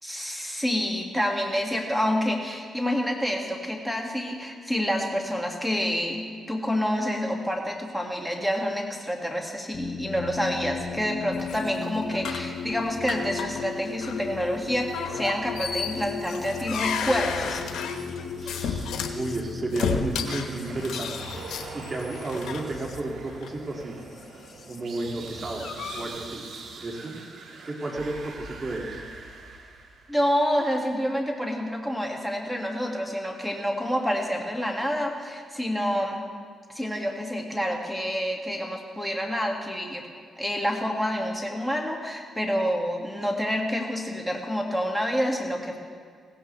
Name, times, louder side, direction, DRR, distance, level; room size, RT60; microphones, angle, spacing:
voice 1, 0.0-17.6 30.1-36.3 36.7-40.0 40.4-45.8, equal, ahead, 1 dB, 2.1 m, -28 dB
sound 1, 9.7-24.8 26.0-26.6, left 5 dB, 50° left, 1.1 m, -37 dB
sound 2, 11.3-12.5 13.1-13.7 13.9-14.2 14.9-19.2 19.7-22.6 23.3-23.5 25.1-26.1, left 6 dB, 75° left, 1.1 m, -33 dB
voice 2, 18.4-21.1 21.7-24.0 24.7-25.6 25.9-26.4 26.8-27.1 27.6-29.0, right 2 dB, 35° right, -1 dB, 2.4 m, -32 dB
sound 3, 20.3-30.4, right 3 dB, 70° right, 2.0 m, -42 dB
17.0 x 16.0 x 3.4 m, 2.1 s
supercardioid pair, 65°, 0 cm